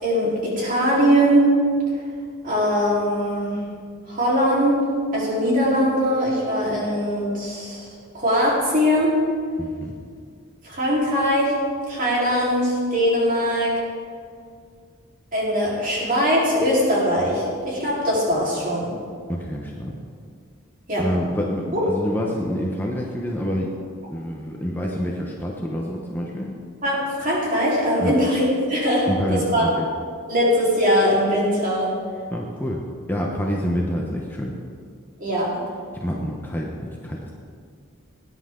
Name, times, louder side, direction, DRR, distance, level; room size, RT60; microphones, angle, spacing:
voice 1, 0.0-1.5 2.4-3.6 4.1-4.8 5.1-7.9 8.1-9.1 10.6-11.5 11.9-13.8 15.3-18.9 20.9-21.0 21.7-21.8 26.8-29.6 30.3-31.9 35.2-35.5, equal, 40° right, -6 dB, 4.0 m, -21 dB
voice 2, 9.6-9.9 19.3-19.9 21.0-23.7 24.1-26.5 28.0-28.1 29.1-29.9 32.3-34.5 36.0-37.3, equal, 10° left, -2 dB, 0.9 m, -27 dB
18.5 x 10.0 x 3.8 m, 2.1 s
head